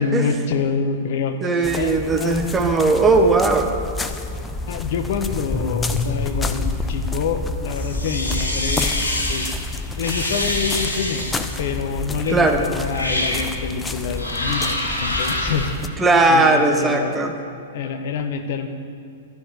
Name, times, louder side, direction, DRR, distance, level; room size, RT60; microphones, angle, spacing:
voice 1, 0.0-2.5 4.7-9.0 9.3-9.5 9.9-11.3 11.6-15.7 16.3-17.2 17.7-18.7, left 5 dB, 55° left, 7 dB, 1.1 m, -26 dB
voice 2, 1.4-3.7 12.3-12.6 16.0-17.3, right 3 dB, 15° right, 3 dB, 1.3 m, -18 dB
sound 1, 1.6-15.9, left 3 dB, 10° left, 0.7 m, -28 dB
sound 2, 7.7-9.5 10.0-11.6 12.2-12.4 12.9-13.4 14.1-15.7, left 1 dB, 85° left, 2.2 m, -26 dB
12.5 x 6.7 x 9.5 m, 2.4 s
figure-of-eight pair, 105°, 0 cm